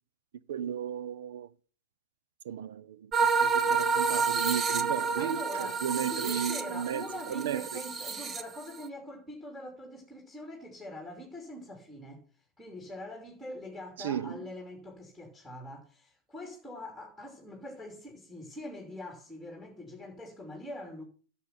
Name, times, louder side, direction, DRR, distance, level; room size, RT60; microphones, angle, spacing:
voice 1, 0.5-1.5 2.4-7.8 14.0-14.4, right 9 dB, 70° right, 0.7 m, -35 dB
sound 1, 3.1-8.9, right 5 dB, 20° right, 0.9 m, -29 dB
voice 2, 5.2-12.2 12.6-21.0, left 1 dB, ahead, 3.1 m, -43 dB
11.0 x 6.6 x 5.9 m
hypercardioid pair, 110°, 0 cm